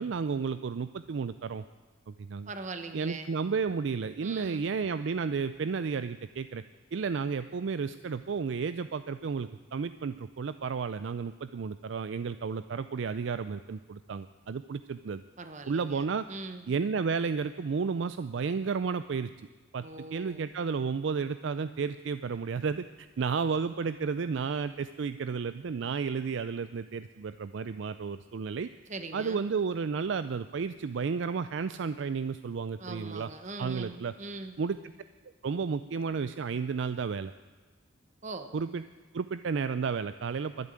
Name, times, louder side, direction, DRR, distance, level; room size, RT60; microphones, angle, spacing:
voice 1, 0.0-1.6 2.1-2.5 2.9-6.6 6.9-15.2 15.7-16.3 16.7-19.5 19.7-19.9 20.1-28.7 29.1-33.3 33.6-34.1 34.6-34.8 35.4-37.3 38.5-38.8 39.1-40.7, right 5 dB, 60° right, 12 dB, 0.4 m, -32 dB
voice 2, 2.5-3.3 4.2-4.7 15.4-16.6 19.8-20.5 28.9-29.4 32.8-34.6 38.2-38.5, right 3 dB, 35° right, 8 dB, 1.1 m, -41 dB
12.0 x 11.0 x 8.9 m, 1.3 s
head